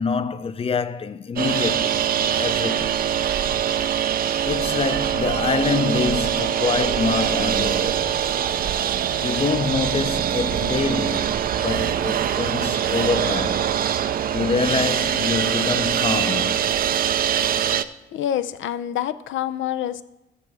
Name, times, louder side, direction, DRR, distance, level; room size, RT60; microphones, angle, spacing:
voice 1, 0.0-3.0 4.4-8.0 9.2-13.6 14.3-16.7, left 5 dB, 30° left, 0.5 m, -26 dB
sound 1, 1.4-17.8, right 9 dB, 45° right, 0.4 m, -23 dB
voice 2, 18.1-20.0, left 11 dB, 75° left, 0.5 m, -26 dB
14.5 x 6.1 x 3.5 m
cardioid pair, 90°, 20 cm